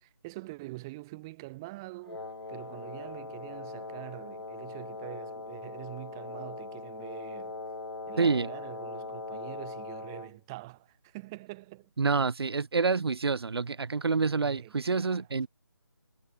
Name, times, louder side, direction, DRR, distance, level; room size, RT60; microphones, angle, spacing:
voice 1, 0.0-7.6 8.1-11.9 14.5-15.2, right 21 dB, 10° right, 0.6 m, -45 dB
Wind instrument woodwind instrument, 2.0-10.4, left 3 dB, 85° left, 1.5 m, -41 dB
voice 2, 8.2-8.5 12.0-15.5, right 4 dB, 90° right, 0.5 m, -27 dB
figure-of-eight pair, 165°, 13 cm